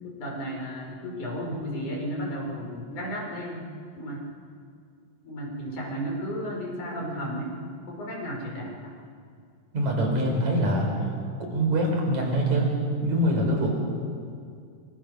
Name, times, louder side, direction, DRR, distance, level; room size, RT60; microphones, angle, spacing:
voice 1, 0.0-3.7 3.9-4.3 5.2-7.6 7.9-9.0, equal, 80° left, -1 dB, 6.9 m, -33 dB
voice 2, 9.7-10.9 11.5-12.7 13.0-13.7, right 1 dB, 70° right, 1 dB, 6.1 m, -24 dB
28.0 x 25.5 x 6.7 m, 2.3 s
omnidirectional pair, 3.4 m